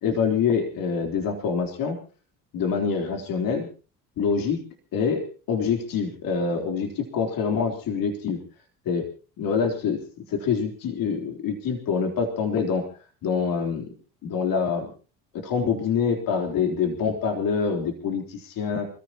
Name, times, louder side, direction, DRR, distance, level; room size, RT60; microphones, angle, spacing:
voice 1, 0.0-2.0 2.5-3.7 4.2-4.6 4.9-5.2 5.5-8.4 8.9-9.0 9.4-10.0 10.3-12.8 13.2-13.9 14.2-14.9 15.3-18.9, left 6 dB, 65° left, 3 dB, 3.7 m, -25 dB
28.0 x 15.0 x 3.0 m, 0.36 s
supercardioid pair, 75°, 37 cm